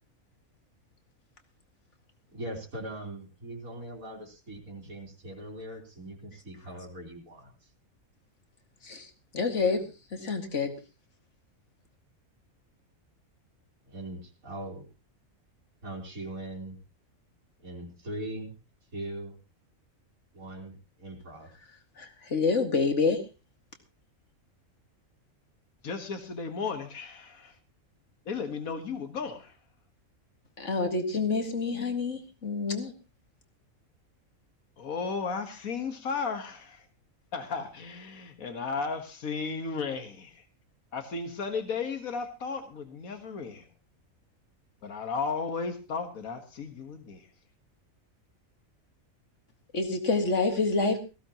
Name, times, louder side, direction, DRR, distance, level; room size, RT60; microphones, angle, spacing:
voice 1, 2.3-7.5 13.9-14.8 15.8-16.8 17.6-18.6 18.9-19.4 20.3-21.5, right 1 dB, 85° right, -3 dB, 4.1 m, -40 dB
voice 2, 9.3-10.7 22.0-23.2 30.6-32.9 49.7-51.0, left 4 dB, 60° left, 5 dB, 2.4 m, -27 dB
voice 3, 25.8-27.6 28.3-29.6 34.8-36.9 37.3-40.4 40.9-43.7 44.8-47.3, left 5 dB, 80° left, 7 dB, 2.0 m, -34 dB
18.5 x 15.5 x 3.0 m, 0.31 s
omnidirectional pair, 1.4 m